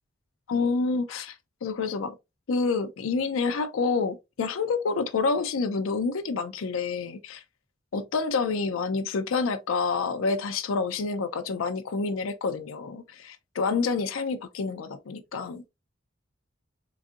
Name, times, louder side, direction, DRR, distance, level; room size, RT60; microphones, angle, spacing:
voice 1, 0.5-1.3 1.6-2.1 2.5-7.4 7.9-15.6, left 4 dB, 80° left, 0.5 m, -28 dB
4.0 x 2.6 x 2.4 m
head